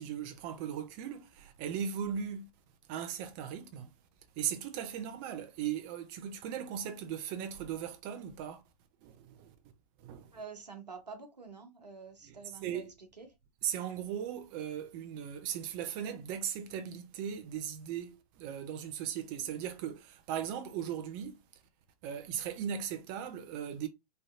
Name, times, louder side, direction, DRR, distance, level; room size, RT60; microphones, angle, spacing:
voice 1, 0.0-2.5 2.9-3.9 4.4-8.6 9.0-9.5 10.0-10.3 12.2-12.9 13.6-21.4 22.0-23.9, right 9 dB, 35° right, 0.5 m, -38 dB
voice 2, 10.3-12.9 13.2-13.3, right 5 dB, 90° right, 0.9 m, -47 dB
3.2 x 2.6 x 2.5 m
figure-of-eight pair, 115°, 20 cm